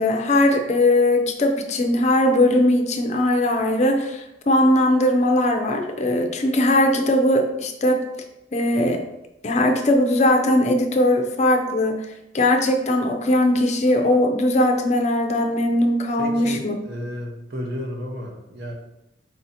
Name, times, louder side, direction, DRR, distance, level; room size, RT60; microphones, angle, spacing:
voice 1, 0.0-8.0 8.5-9.0 9.4-12.1 12.3-16.7, left 1 dB, 35° left, 4 dB, 0.5 m, -19 dB
voice 2, 16.2-18.7, equal, 60° right, 1 dB, 0.9 m, -32 dB
4.8 x 2.7 x 4.1 m, 0.88 s
head